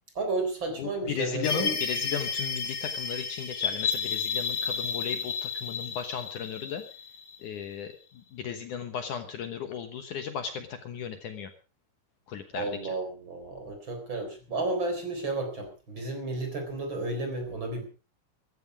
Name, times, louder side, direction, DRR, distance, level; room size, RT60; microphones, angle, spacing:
voice 1, 0.1-1.7 12.5-17.8, right 2 dB, 30° right, 5 dB, 4.3 m, -32 dB
voice 2, 0.8-6.8 7.4-11.5 12.3-12.9, left 8 dB, 65° left, 7 dB, 2.3 m, -36 dB
sound 1, 1.4-7.7, left 6 dB, 45° left, 1.4 m, -32 dB
15.0 x 14.5 x 4.8 m, 0.35 s
omnidirectional pair, 4.4 m